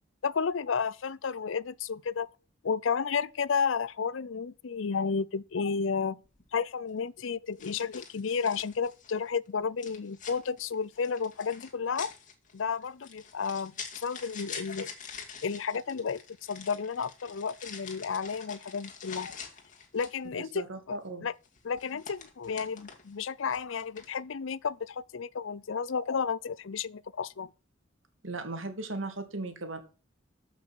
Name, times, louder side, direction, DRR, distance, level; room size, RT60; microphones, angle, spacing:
voice 1, 0.2-2.3 2.6-6.2 6.5-12.1 12.5-14.9 15.4-16.2 16.5-19.4 19.9-21.3 21.6-27.5, left 6 dB, 75° left, 0.5 m, -32 dB
sound 1, 6.2-6.5 7.6-9.2 9.8-20.3 21.4-23.1 23.5-24.2, left 6 dB, 40° left, 2.3 m, -46 dB
voice 2, 20.4-21.3 28.2-29.8, right 2 dB, 85° right, 2.6 m, -37 dB
13.5 x 6.1 x 6.3 m
head